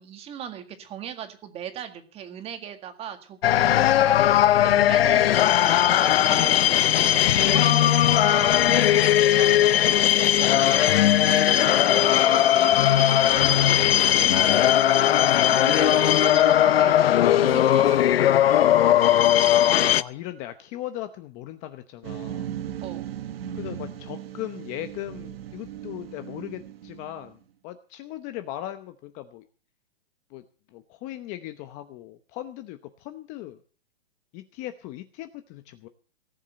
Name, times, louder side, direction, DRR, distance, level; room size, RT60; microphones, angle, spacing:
voice 1, 0.0-5.4 5.9-10.9 11.3-15.1 15.5-18.5 22.8-23.1, right 9 dB, 20° right, 7 dB, 1.9 m, -38 dB
sound 1, 3.4-20.0, left 12 dB, 70° left, 0.8 m, -19 dB
voice 2, 19.9-22.5 23.5-29.5 30.3-33.6 34.3-35.9, left 14 dB, 25° left, 10 dB, 0.8 m, -38 dB
sound 2, 22.0-27.3, right 10 dB, 70° right, 1.5 m, -37 dB
18.5 x 7.3 x 8.0 m, 0.40 s
hypercardioid pair, 155°, 31 cm